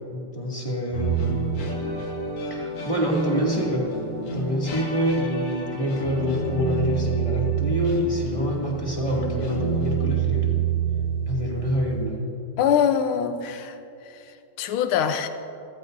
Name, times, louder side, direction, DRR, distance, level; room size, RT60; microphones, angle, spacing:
voice 1, 0.1-1.4 2.5-3.9 4.3-10.6 11.3-12.2, equal, 15° left, -4 dB, 2.4 m, -26 dB
sound 1, 0.9-12.0, right 6 dB, 90° left, 2.9 m, -28 dB
voice 2, 12.6-13.8 14.6-15.3, left 8 dB, 75° left, 8 dB, 1.7 m, -23 dB
30.0 x 14.5 x 2.7 m, 2.7 s
omnidirectional pair, 2.4 m